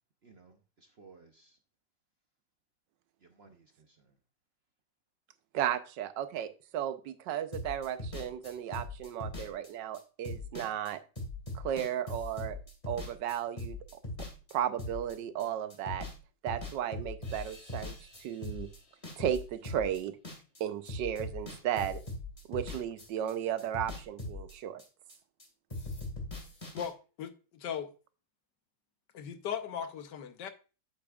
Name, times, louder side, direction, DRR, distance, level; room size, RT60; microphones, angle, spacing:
voice 1, 0.2-1.6 3.2-4.2 26.5-26.6, right 4 dB, 55° right, 0.7 m, -59 dB
voice 2, 5.5-11.0 11.5-12.6 12.9-14.0 14.5-16.0 16.4-18.7 19.2-20.1 20.6-22.0 22.5-24.8, right 10 dB, 80° right, 1.4 m, -34 dB
sound 1, 7.5-16.2 16.5-20.6 20.9-23.3 23.6-25.5 25.7-26.9, left 2 dB, 20° left, 1.8 m, -41 dB
voice 3, 26.7-27.9 29.1-30.5, left 8 dB, 75° left, 1.4 m, -38 dB
8.4 x 8.4 x 2.4 m
omnidirectional pair, 1.9 m